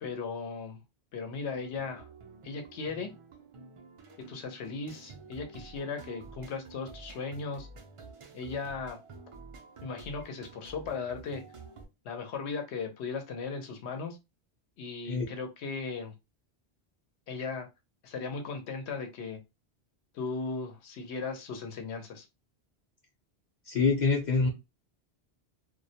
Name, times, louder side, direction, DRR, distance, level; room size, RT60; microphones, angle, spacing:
voice 1, 0.0-0.8 1.1-2.1 2.4-3.1 4.3-7.7 8.3-9.0 9.8-11.4 12.0-14.2 14.8-16.1 17.3-17.7 18.0-19.4 20.1-22.3, left 4 dB, 85° left, 5 dB, 0.9 m, -37 dB
sound 1, 1.3-11.9, right 4 dB, 60° right, 0.3 m, -50 dB
voice 2, 23.7-24.5, left 4 dB, 50° left, -1 dB, 0.6 m, -25 dB
2.3 x 2.1 x 2.7 m, 0.24 s
omnidirectional pair, 1.1 m